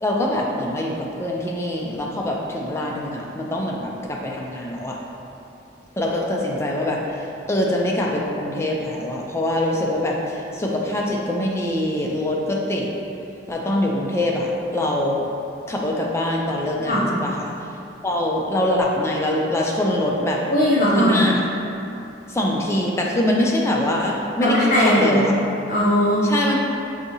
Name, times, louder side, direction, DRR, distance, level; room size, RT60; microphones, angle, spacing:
voice 1, 0.0-5.0 6.0-12.9 13.5-15.3 15.7-17.5 18.0-20.4 21.0-21.4 22.3-25.3 26.2-26.6, left 1 dB, 15° left, -2 dB, 0.3 m, -23 dB
voice 2, 20.5-21.1 24.4-25.2 25.7-26.3, equal, 40° left, -7 dB, 0.7 m, -18 dB
4.8 x 2.7 x 2.7 m, 2.8 s
head